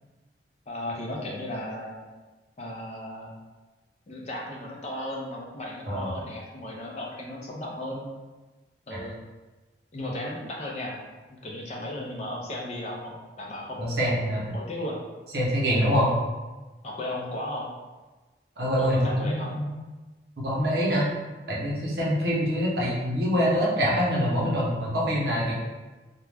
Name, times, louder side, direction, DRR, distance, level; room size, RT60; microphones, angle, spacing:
voice 1, 0.7-2.0 2.6-3.3 4.1-8.1 8.9-9.2 9.9-15.0 16.8-17.7 18.8-19.6, left 1 dB, 35° left, -2 dB, 0.4 m, -35 dB
voice 2, 5.9-6.2 8.9-9.1 13.8-14.5 15.3-16.1 18.6-19.7 20.4-21.1 21.5-25.6, equal, 60° right, -5 dB, 0.7 m, -25 dB
2.3 x 2.1 x 3.2 m, 1.2 s
head